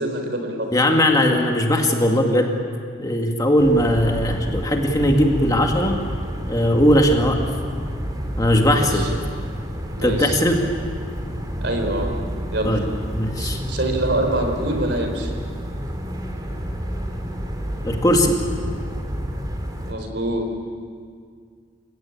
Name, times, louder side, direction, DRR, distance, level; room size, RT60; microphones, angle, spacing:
voice 1, 0.0-0.7 8.7-9.1 10.0-10.4 11.6-12.1 12.5-12.8 13.4-15.3 19.9-20.5, right 1 dB, 60° right, 4 dB, 4.1 m, -25 dB
voice 2, 0.7-2.6 3.0-6.0 6.5-7.4 8.4-9.1 10.0-10.6 12.6-12.8 13.1-13.6 17.8-18.4, equal, 20° left, 2 dB, 2.1 m, -19 dB
sound 1, 3.6-19.9, equal, 20° right, 2.6 m, -29 dB
29.0 x 17.0 x 8.9 m, 2.1 s
head